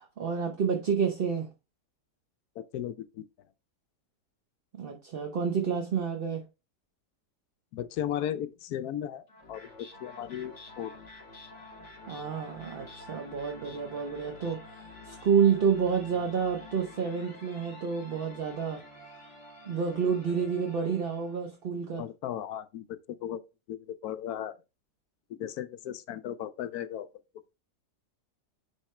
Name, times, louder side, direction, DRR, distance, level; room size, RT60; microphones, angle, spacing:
voice 1, 0.0-1.5 4.7-6.5 12.1-14.6 15.0-18.8 19.7-22.0, right 6 dB, 50° right, 0.8 m, -29 dB
voice 2, 2.6-3.2 7.7-9.2 9.5-10.9 22.0-23.4 23.7-24.5 25.4-27.1, left 10 dB, 75° left, 1.0 m, -36 dB
sound 1, 9.3-21.5, left 2 dB, 40° left, 2.4 m, -49 dB
9.5 x 3.6 x 3.2 m
omnidirectional pair, 1.7 m